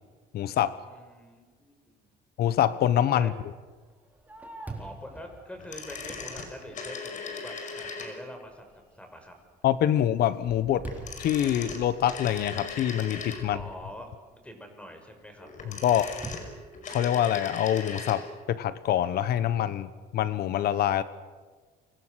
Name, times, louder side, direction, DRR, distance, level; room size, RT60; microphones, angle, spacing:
voice 1, 0.3-0.8 2.4-3.3 9.6-10.9 11.2-13.6 15.6-16.1 16.8-21.0, left 11 dB, 70° left, 14 dB, 1.2 m, -25 dB
voice 2, 0.9-2.1 3.2-3.3 4.8-8.6 8.9-9.3 13.4-15.5, equal, 5° left, 5 dB, 6.0 m, -45 dB
Fireworks, 3.8-7.3 7.8-7.9 8.5-8.9 9.3-14.1 16.2-17.6, right 3 dB, 10° right, 3.8 m, -46 dB
sound 1, 5.6-8.4 10.8-13.7 15.4-18.2 18.5-18.6, left 4 dB, 50° left, 5.5 m, -39 dB
29.5 x 25.5 x 6.5 m, 1.4 s
cardioid pair, 110°, 17 cm